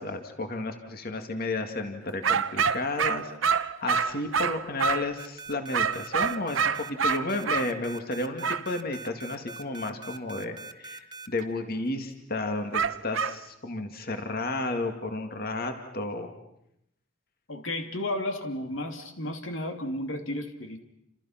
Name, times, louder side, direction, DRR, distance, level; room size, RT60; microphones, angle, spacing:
voice 1, 0.0-3.3 3.6-16.3, left 2 dB, 50° left, 5 dB, 2.2 m, -32 dB
sound 1, 2.2-5.1 5.7-7.7 8.4-8.7 12.7-13.4, right 6 dB, 90° right, 1.0 m, -26 dB
sound 2, 5.2-11.4, right 4 dB, 25° right, 1.2 m, -42 dB
voice 2, 17.5-20.8, left 1 dB, 90° left, 5 dB, 2.9 m, -33 dB
29.5 x 27.5 x 5.9 m, 0.79 s
head